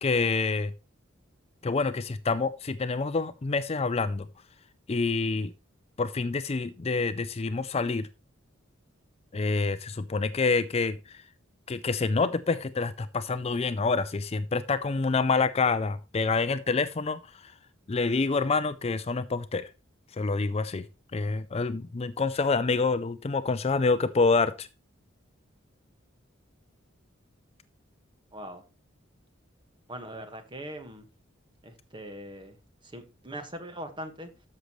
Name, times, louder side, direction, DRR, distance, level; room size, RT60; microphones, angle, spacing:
voice 1, 0.0-0.7 1.6-4.3 4.9-5.5 6.0-8.1 9.3-11.0 11.7-17.5 17.9-19.6 20.2-20.8 21.1-24.7, left 4 dB, 30° left, 13 dB, 0.5 m, -27 dB
voice 2, 28.3-28.6 29.9-31.1 31.6-32.6 32.8-34.3, right 1 dB, 25° right, 7 dB, 1.5 m, -41 dB
13.0 x 6.6 x 3.1 m, 0.29 s
head